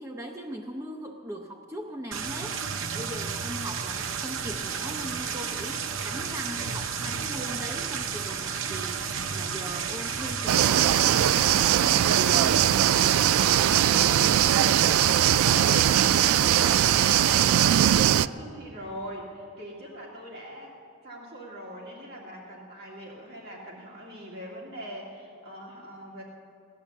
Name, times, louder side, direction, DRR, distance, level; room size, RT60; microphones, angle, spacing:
voice 1, 0.0-2.6 2.9-12.7, right 1 dB, 15° right, 2 dB, 0.6 m, -39 dB
sound 1, 2.1-18.1, right 6 dB, 70° right, 0.7 m, -32 dB
sound 2, 10.5-18.3, right 11 dB, 85° right, 0.3 m, -21 dB
voice 2, 13.5-20.7 21.0-26.2, right 1 dB, 50° right, -3 dB, 2.0 m, -41 dB
17.0 x 10.5 x 7.3 m, 2.4 s
head